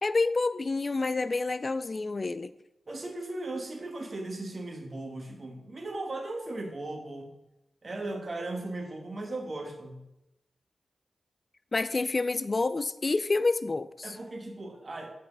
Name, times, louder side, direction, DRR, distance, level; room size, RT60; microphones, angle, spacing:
voice 1, 0.0-2.5 11.7-14.2, left 3 dB, 40° left, 14 dB, 0.3 m, -28 dB
voice 2, 2.9-7.3 7.8-10.1 14.0-15.1, right 2 dB, 45° right, 3 dB, 1.5 m, -37 dB
7.4 x 4.6 x 5.2 m, 0.89 s
cardioid pair, 65°, 0 cm